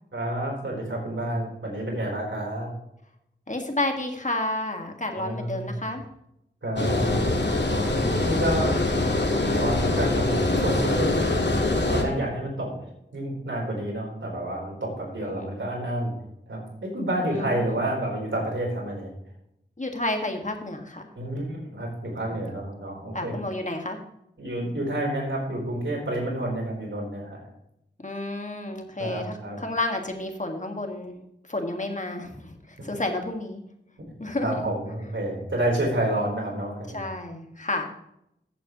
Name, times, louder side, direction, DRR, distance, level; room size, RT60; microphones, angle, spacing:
voice 1, 0.1-2.7 5.2-5.8 6.6-7.4 7.7-8.7 9.5-11.6 11.9-12.7 13.1-16.1 16.5-19.1 21.2-23.3 24.4-27.4 29.0-29.6 34.4-37.0, right 1 dB, 90° right, -1 dB, 4.0 m, -29 dB
voice 2, 3.5-6.0 11.9-12.4 15.2-15.6 17.2-17.8 19.8-21.1 22.2-22.5 23.1-24.0 28.0-31.2 31.5-33.6 34.2-34.6 36.9-37.9, left 2 dB, 40° left, 3 dB, 1.9 m, -31 dB
Water, 6.8-12.0, left 2 dB, 65° left, 1.9 m, -24 dB
14.5 x 8.3 x 3.1 m, 0.80 s
wide cardioid pair, 50°, 19 cm